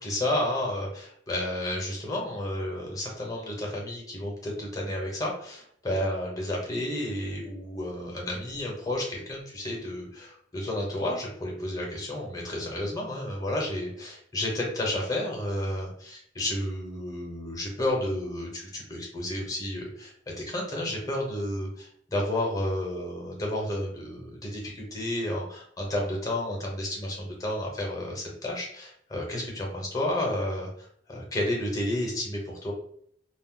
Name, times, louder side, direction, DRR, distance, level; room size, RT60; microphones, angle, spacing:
voice 1, 0.0-32.7, left 1 dB, 20° left, -1 dB, 1.0 m, -31 dB
2.5 x 2.1 x 3.8 m, 0.66 s
head